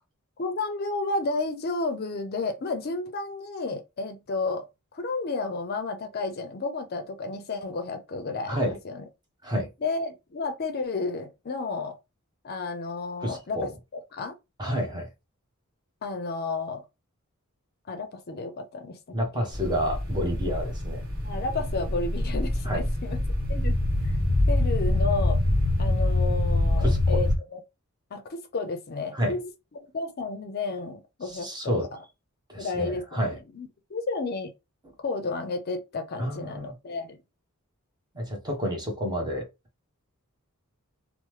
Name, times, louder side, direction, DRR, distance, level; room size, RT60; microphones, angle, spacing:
voice 1, 0.4-4.6 4.9-9.1 9.8-12.0 12.4-14.3 16.0-16.8 17.9-19.5 21.2-23.2 23.5-23.7 24.5-25.4 25.8-27.6 28.1-29.5 29.9-31.7 32.6-34.5 35.0-37.2, left 3 dB, 45° left, 0.5 m, -32 dB
voice 2, 13.2-13.7 14.6-15.1 19.1-21.0 22.6-22.9 26.8-27.2 29.1-29.3 31.3-31.9 32.5-33.4 36.2-36.7 38.1-39.5, equal, 20° right, 0.9 m, -29 dB
sound 1, 19.5-27.4, left 1 dB, 65° right, 1.0 m, -25 dB
3.0 x 2.0 x 3.1 m
head